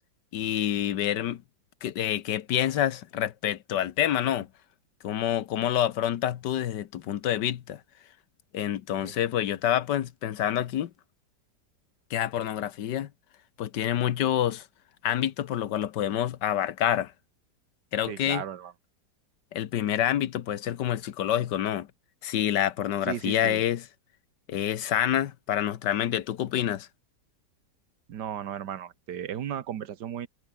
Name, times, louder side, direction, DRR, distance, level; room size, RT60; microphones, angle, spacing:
voice 1, 0.3-1.4 1.8-4.5 5.0-7.8 8.5-10.9 12.1-13.1 13.6-14.6 15.0-17.1 17.9-18.4 19.5-21.9 22.2-23.8 24.5-26.9, left 11 dB, 85° left, 1.6 m, -27 dB
voice 2, 18.1-18.7 23.1-23.6 28.1-30.3, right 9 dB, 80° right, 1.8 m, -35 dB
omnidirectional pair, 1.8 m